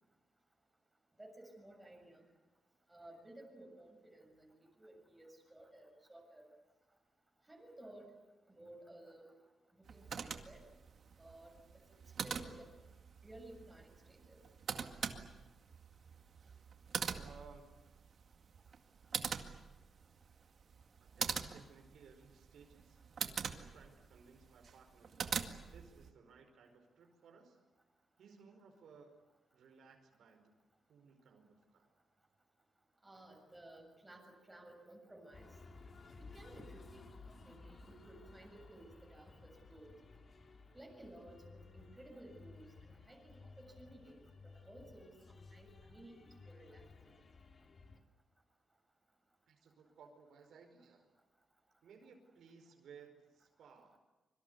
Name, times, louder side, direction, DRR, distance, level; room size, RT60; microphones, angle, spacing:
voice 1, 1.2-2.2 2.9-4.5 4.8-6.5 7.5-8.1 8.5-9.3 9.7-10.6 11.2-11.6 12.2-12.7 13.2-14.4 33.0-35.5 36.2-37.1 37.4-39.9 40.7-44.2 44.7-47.1, right 1 dB, 10° right, 1 dB, 7.1 m, -56 dB
sound 1, 9.8-26.1, right 6 dB, 50° right, 2.0 m, -44 dB
voice 2, 17.1-17.7 21.0-27.6 28.2-29.1 29.5-30.5 30.9-31.9 49.5-51.1 51.8-54.0, right 5 dB, 80° right, 3 dB, 5.1 m, -60 dB
sound 2, 35.3-48.0, left 4 dB, 40° left, 2.9 m, -57 dB
25.5 x 24.5 x 8.3 m, 1.1 s
wide cardioid pair, 140°, 0 cm